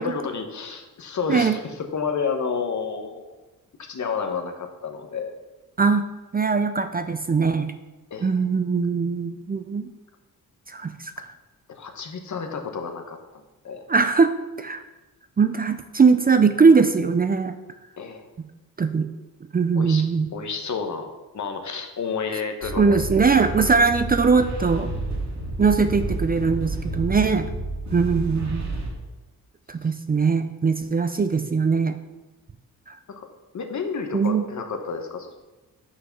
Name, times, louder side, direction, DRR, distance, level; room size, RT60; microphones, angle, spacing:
voice 1, 0.0-3.3 3.8-5.3 8.1-8.3 11.7-13.2 13.6-13.8 18.0-18.3 19.7-20.1 20.3-21.1 21.3-23.1 33.2-33.3 33.5-35.4, left 5 dB, 55° left, 5 dB, 1.2 m, -30 dB
voice 2, 5.8-7.7 8.2-9.9 10.7-11.3 13.9-14.8 15.4-17.6 18.8-19.1 19.5-20.3 22.8-24.9 25.6-27.5 27.9-28.7 29.7-32.0 32.9-33.0 34.1-34.5, right 5 dB, 25° right, 9 dB, 0.5 m, -21 dB
sound 1, 22.6-28.9, right 2 dB, 50° right, 2.4 m, -30 dB
6.4 x 5.8 x 5.9 m, 1.1 s
cardioid pair, 80°, 35 cm